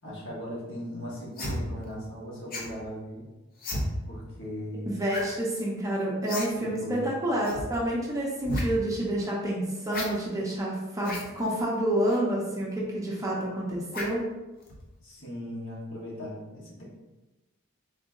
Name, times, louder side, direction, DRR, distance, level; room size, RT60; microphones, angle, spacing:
voice 1, 0.0-3.2 4.0-4.9 6.5-7.1 15.0-16.8, equal, 60° left, -5 dB, 1.3 m, -38 dB
sound 1, 1.4-1.6 2.5-2.7 3.6-3.8 5.1-5.3 5.5-5.6 6.3-6.5 6.7-6.8 7.4-7.6 8.4-8.6 9.9-10.1 11.0-11.3 12.1-12.2 13.9-14.2 14.7-14.8, left 1 dB, 45° left, 0.7 m, -33 dB
voice 2, 4.9-14.2, right 1 dB, 15° right, -4 dB, 0.7 m, -29 dB
3.8 x 2.6 x 3.6 m, 1.1 s
head